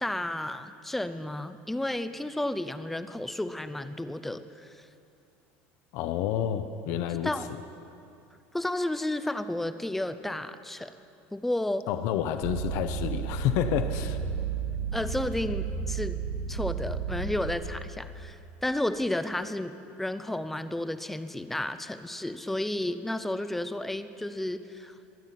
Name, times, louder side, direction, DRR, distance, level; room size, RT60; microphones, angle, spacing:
voice 1, 0.0-4.8 7.2-7.5 8.5-11.0 11.3-11.9 14.9-16.2 16.5-19.7 20.0-24.9, left 1 dB, 5° left, 12 dB, 0.4 m, -32 dB
voice 2, 5.9-7.3 11.9-14.2, left 10 dB, 55° left, 9 dB, 0.7 m, -29 dB
sound 1, 12.4-17.5, right 6 dB, 85° right, 2.1 m, -32 dB
23.5 x 9.2 x 5.8 m, 2.6 s
cardioid pair, 170°, 6 cm